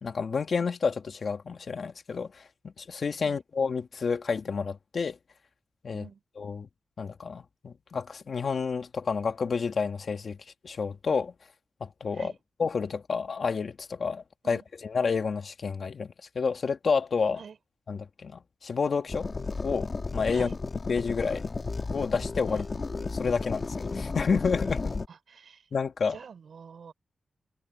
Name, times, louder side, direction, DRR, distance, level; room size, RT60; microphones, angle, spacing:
voice 1, 0.0-5.2 5.8-6.1 6.4-6.7 7.0-10.4 10.6-11.3 11.8-12.3 12.6-17.4 17.9-19.3 19.6-20.5 20.9-21.5 21.9-22.7 23.1-24.9 25.7-26.2, left 5 dB, 45° left, 1.8 m, -30 dB
sound 1, 19.1-25.1, left 3 dB, 30° left, 2.0 m, -33 dB
voice 2, 25.1-25.6 26.1-26.9, right 6 dB, 60° right, 4.4 m, -46 dB
wide cardioid pair, 160°, 0 cm